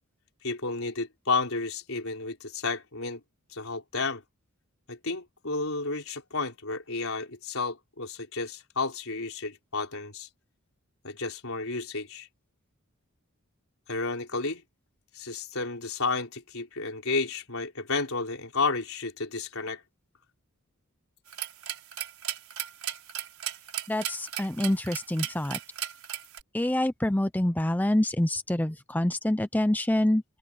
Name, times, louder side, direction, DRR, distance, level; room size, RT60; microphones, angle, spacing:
voice 1, 0.4-3.2 3.5-4.2 4.9-10.3 11.0-12.3 13.9-14.6 15.1-19.8, left 3 dB, 65° left, 5.1 m, -32 dB
sound 1, 21.3-26.4, right 11 dB, 70° right, 5.9 m, -35 dB
voice 2, 23.9-25.6 26.5-30.2, left 1 dB, 10° left, 0.5 m, -26 dB
head